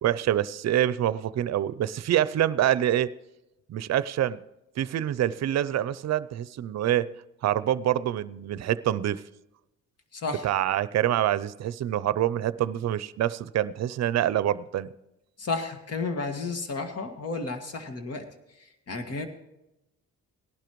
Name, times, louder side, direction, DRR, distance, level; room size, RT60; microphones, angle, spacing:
voice 1, 0.0-3.1 3.7-4.4 4.8-7.1 7.4-9.2 10.4-14.9, right 12 dB, 60° right, 17 dB, 0.6 m, -26 dB
voice 2, 10.1-10.5 15.4-18.3 18.6-19.3, left 3 dB, 55° left, 5 dB, 2.0 m, -32 dB
18.0 x 12.0 x 3.1 m, 0.91 s
cardioid pair, 90°, 30 cm